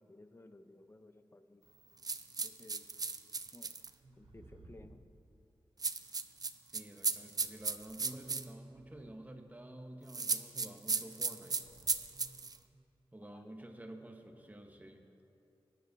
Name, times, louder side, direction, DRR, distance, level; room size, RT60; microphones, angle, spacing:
voice 1, 0.0-1.6 2.4-2.9 3.5-3.7 4.2-5.0 13.3-13.5, left 2 dB, 25° left, 9 dB, 0.7 m, -57 dB
sound 1, 2.0-3.9 5.8-8.4 10.1-12.6, right 4 dB, 45° right, 0.5 m, -35 dB
sound 2, 2.9-3.1 3.8-5.1 6.3-6.4 7.5-9.3 11.4-12.8, right 2 dB, 65° right, 1.0 m, -60 dB
voice 2, 6.7-11.6 13.1-15.0, right 1 dB, 15° right, 4 dB, 1.1 m, -50 dB
21.5 x 9.7 x 2.7 m, 2.8 s
wide cardioid pair, 65°, 9 cm